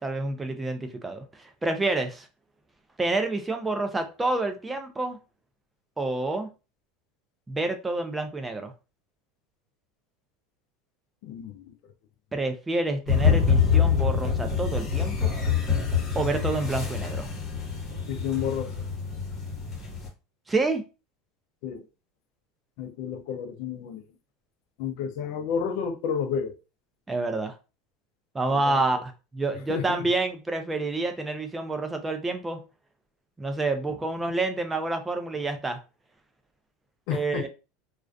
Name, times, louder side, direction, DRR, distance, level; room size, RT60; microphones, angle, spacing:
voice 1, 0.0-2.3 3.0-5.2 6.0-6.5 7.5-8.7 12.3-15.3 16.2-17.3 20.5-20.8 27.1-27.5 28.3-32.6 33.4-35.8 37.1-37.5, right 2 dB, 10° right, 0.3 m, -28 dB
voice 2, 11.2-11.7 18.1-18.7 21.6-21.8 22.8-24.0 24.8-26.6 28.5-29.0 29.7-30.0 37.1-37.5, left 7 dB, 60° left, 0.4 m, -31 dB
sound 1, 13.1-20.1, left 6 dB, 25° left, 1.1 m, -25 dB
2.3 x 2.2 x 2.4 m
supercardioid pair, 150°, 0 cm